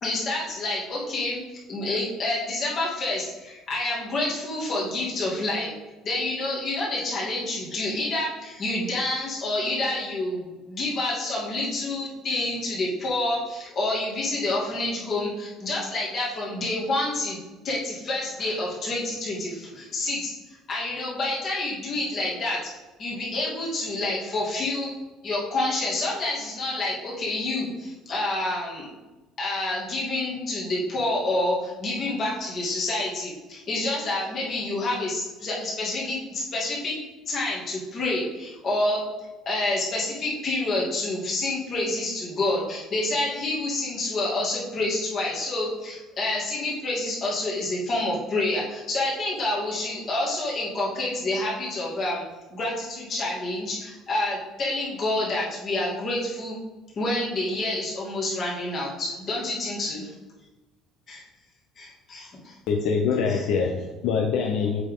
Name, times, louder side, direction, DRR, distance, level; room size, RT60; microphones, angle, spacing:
voice 1, 0.0-1.4 1.7-5.7 6.0-20.3 20.7-22.6 23.0-24.9 25.2-28.9 29.4-36.9 37.3-39.0 39.5-52.2 52.5-56.6 57.0-60.1 61.1-61.2 61.8-62.5 63.3-63.5, left 2 dB, 35° left, -5 dB, 2.4 m, -28 dB
voice 2, 62.7-64.8, left 5 dB, 70° left, 2 dB, 0.8 m, -24 dB
7.8 x 5.3 x 3.8 m, 1.1 s
cardioid pair, 155°, 0 cm